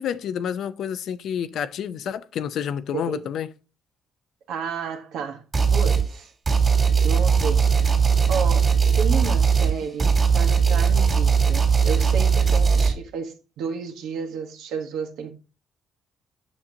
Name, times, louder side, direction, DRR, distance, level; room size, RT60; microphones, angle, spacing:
voice 1, 0.0-3.5 9.2-9.3, left 8 dB, 75° left, 0.6 m, -29 dB
voice 2, 2.9-3.3 4.5-5.4 5.7-6.3 7.0-7.7 8.3-15.3, right 6 dB, 85° right, 1.3 m, -32 dB
sound 1, 5.5-6.1 6.5-12.9, right 6 dB, 35° right, 2.3 m, -19 dB
7.1 x 6.4 x 2.8 m
cardioid pair, 90°, 0 cm